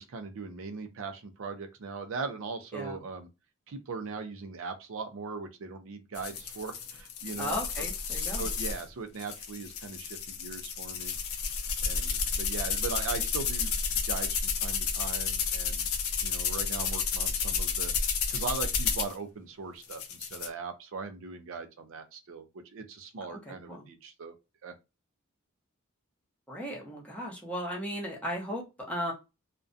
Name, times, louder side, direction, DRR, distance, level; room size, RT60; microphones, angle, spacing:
voice 1, 0.0-3.3 3.7-11.1 11.8-15.9 16.2-22.5 22.7-24.3 24.6-24.7, right 4 dB, 65° right, 0.4 m, -39 dB
sound 1, 6.1-8.8 9.2-19.1 19.8-20.5, left 6 dB, 75° left, 0.5 m, -31 dB
voice 2, 7.4-8.5 23.3-23.8 26.5-29.1, equal, 5° left, 0.7 m, -36 dB
2.4 x 2.1 x 2.5 m
head